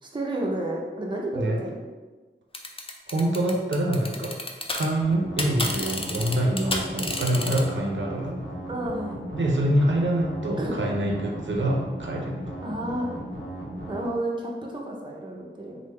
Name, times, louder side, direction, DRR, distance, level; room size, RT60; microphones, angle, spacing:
voice 1, 0.0-1.8 8.7-9.3 10.6-10.8 12.6-13.1 13.9-15.8, right 1 dB, 25° right, -2 dB, 0.5 m, -31 dB
sound 1, 2.5-4.9 5.1-7.6, left 2 dB, 30° left, 0.4 m, -30 dB
voice 2, 3.1-4.4 4.7-8.4 9.3-12.4, right 1 dB, 70° right, -1 dB, 0.5 m, -25 dB
sound 2, 5.0-14.1, right 1 dB, 65° left, 0.8 m, -37 dB
3.2 x 2.0 x 3.2 m, 1.3 s
wide cardioid pair, 60°, 20 cm